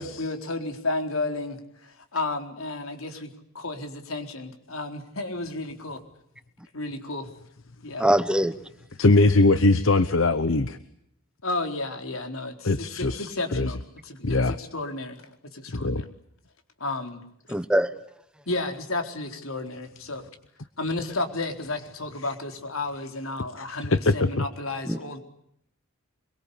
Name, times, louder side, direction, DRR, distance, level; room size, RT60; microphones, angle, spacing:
voice 1, 0.0-6.0 6.7-7.3 7.8-8.1 11.4-13.8 14.0-16.1 16.8-17.2 18.5-20.2 20.8-25.2, left 2 dB, 90° left, 5 dB, 4.1 m, -32 dB
voice 2, 8.0-8.5 17.5-17.9 24.9-25.0, right 1 dB, 5° right, 12 dB, 1.0 m, -22 dB
voice 3, 9.0-10.8 12.6-13.7 14.2-14.6 15.7-16.0 23.6-24.3, left 2 dB, 70° left, 13 dB, 1.0 m, -21 dB
25.0 x 24.0 x 8.5 m, 0.75 s
head